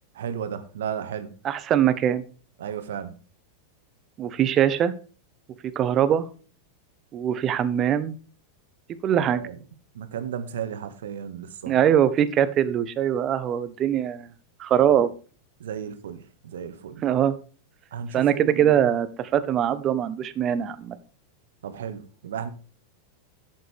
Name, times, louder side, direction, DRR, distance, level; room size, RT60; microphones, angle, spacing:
voice 1, 0.1-1.3 2.6-3.2 9.2-9.6 9.9-11.8 14.9-15.0 15.6-17.0 17.9-18.9 21.6-22.5, right 8 dB, 70° right, 10 dB, 1.6 m, -34 dB
voice 2, 1.4-2.2 4.2-4.9 5.6-6.3 7.1-8.2 9.0-9.4 11.7-14.3 14.6-15.1 17.0-17.3 18.1-21.0, right 10 dB, 35° right, 13 dB, 1.1 m, -22 dB
11.5 x 7.7 x 3.5 m, 0.38 s
hypercardioid pair, 95°, 0 cm